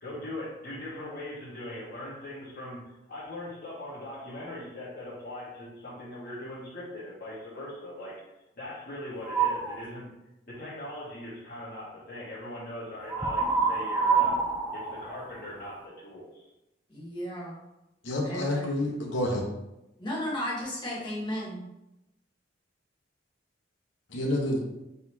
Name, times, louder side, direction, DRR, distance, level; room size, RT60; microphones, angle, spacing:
voice 1, 0.0-2.8 3.1-8.2 8.5-10.1 10.5-14.3 14.7-16.5, left 1 dB, 50° left, -8 dB, 1.4 m, -40 dB
sound 1, 9.2-9.8 13.1-15.9, right 5 dB, 10° right, 0.4 m, -27 dB
voice 2, 16.9-17.6 18.2-18.7 20.0-21.7, equal, 25° left, -5 dB, 1.3 m, -34 dB
voice 3, 18.0-19.5 24.1-24.6, left 1 dB, 70° left, 0 dB, 1.0 m, -28 dB
4.6 x 4.1 x 2.8 m, 0.92 s
head